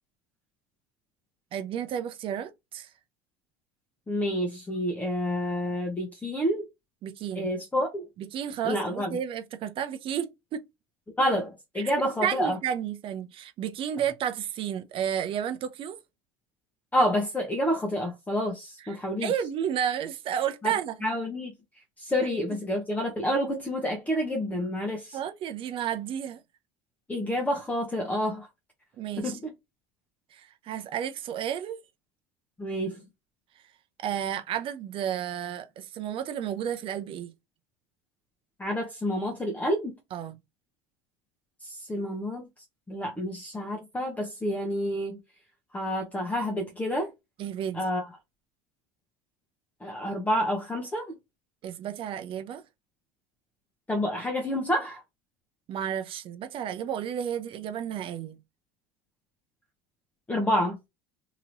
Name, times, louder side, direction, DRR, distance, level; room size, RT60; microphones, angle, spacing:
voice 1, 1.5-2.9 7.0-7.5 8.2-10.6 11.8-11.9 12.2-16.0 18.8-21.1 25.1-26.4 29.0-29.4 30.3-31.8 34.0-37.3 40.1-40.4 47.4-47.8 51.6-52.6 55.7-58.4, right 9 dB, 45° right, 0.6 m, -32 dB
voice 2, 4.1-6.6 7.3-8.1 8.6-9.1 11.2-12.6 16.9-19.3 20.6-20.7 21.0-21.5 22.0-25.2 27.1-28.5 29.2-29.5 32.6-33.0 38.6-39.9 41.6-42.4 42.9-45.2 45.7-47.1 47.7-48.1 49.8-51.2 53.9-55.0 60.3-60.8, equal, 10° left, 0.9 m, -28 dB
2.9 x 2.8 x 2.6 m
hypercardioid pair, 90°, 12 cm